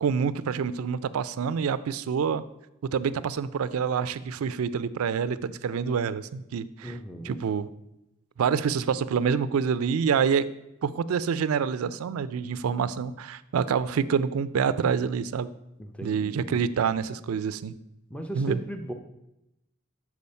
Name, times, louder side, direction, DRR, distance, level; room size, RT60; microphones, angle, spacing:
voice 1, 0.0-2.4 2.9-7.0 7.2-7.7 8.4-10.5 10.8-15.5 16.0-17.7 18.3-18.6, right 6 dB, 85° right, 16 dB, 0.4 m, -27 dB
voice 2, 6.8-7.4 15.8-16.5 18.1-18.9, right 1 dB, 5° left, 4 dB, 0.5 m, -37 dB
6.9 x 4.8 x 5.3 m, 0.88 s
head